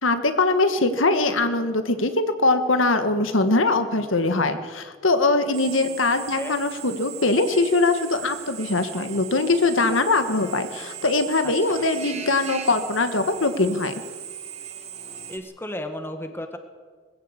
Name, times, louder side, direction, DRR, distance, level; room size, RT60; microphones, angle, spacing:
voice 1, 0.0-13.9, left 2 dB, 80° left, 9 dB, 1.7 m, -22 dB
Drill, 5.5-15.4, right 7 dB, 35° right, 2.2 m, -38 dB
voice 2, 11.4-11.8 15.3-16.6, left 1 dB, 10° left, 6 dB, 1.6 m, -34 dB
21.0 x 15.5 x 8.3 m, 1.5 s
head